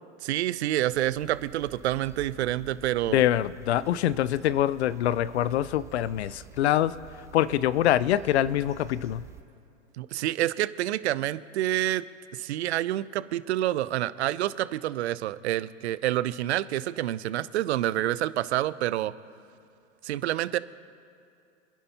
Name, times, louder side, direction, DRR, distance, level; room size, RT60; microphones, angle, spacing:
voice 1, 0.2-3.2 10.0-12.0 12.3-19.1 20.0-20.6, right 14 dB, 60° right, 16 dB, 0.7 m, -28 dB
sound 1, 0.9-9.4, right 7 dB, 10° right, 0.6 m, -49 dB
voice 2, 3.1-6.9 7.3-9.2, left 12 dB, 60° left, 18 dB, 0.5 m, -24 dB
28.5 x 10.5 x 2.9 m, 2.5 s
hypercardioid pair, 115°, 38 cm